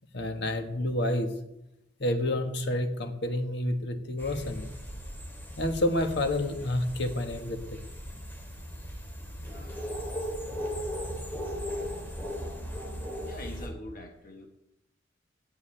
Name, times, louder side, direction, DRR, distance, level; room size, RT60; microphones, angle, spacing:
voice 1, 0.1-1.3 2.0-4.7 5.6-7.6, left 1 dB, 65° left, 6 dB, 1.4 m, -29 dB
sound 1, 4.2-13.7, equal, 10° left, 2.2 m, -37 dB
voice 2, 9.3-10.1 13.2-14.5, left 1 dB, 50° left, 3 dB, 1.2 m, -45 dB
17.0 x 9.5 x 3.3 m, 0.88 s
head